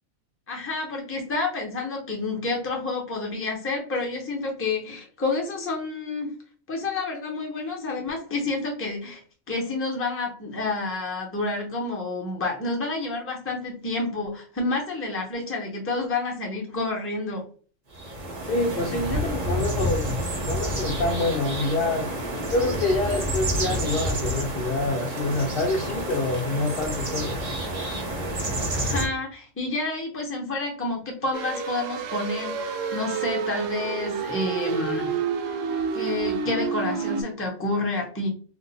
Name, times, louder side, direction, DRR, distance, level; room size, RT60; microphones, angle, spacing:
voice 1, 0.5-6.3 6.7-9.2 9.5-17.4 28.7-35.2 35.9-38.3, left 3 dB, 15° left, 0 dB, 0.5 m, -29 dB
sound 1, 17.9-29.1, right 1 dB, 40° right, 0.6 m, -29 dB
voice 2, 18.4-20.1 20.5-22.1 22.5-27.4, left 2 dB, 60° left, 2 dB, 0.6 m, -26 dB
sound 2, 31.3-37.2, right 6 dB, 75° right, 0.9 m, -29 dB
2.6 x 2.4 x 4.0 m, 0.42 s
omnidirectional pair, 1.4 m